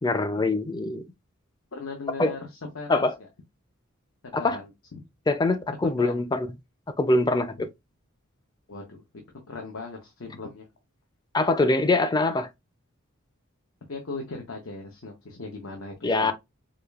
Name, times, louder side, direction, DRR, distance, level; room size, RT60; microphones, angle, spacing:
voice 1, 0.0-1.0 2.2-2.3 2.9-3.1 4.3-4.6 5.3-6.5 7.0-7.7 11.3-12.5 16.0-16.3, left 2 dB, 20° left, 0.4 m, -23 dB
voice 2, 1.7-3.3 4.4-5.0 5.8-6.2 7.6-7.7 8.7-9.0 9.5-10.7 13.9-16.3, left 3 dB, 75° left, 0.9 m, -38 dB
4.9 x 2.4 x 2.4 m
head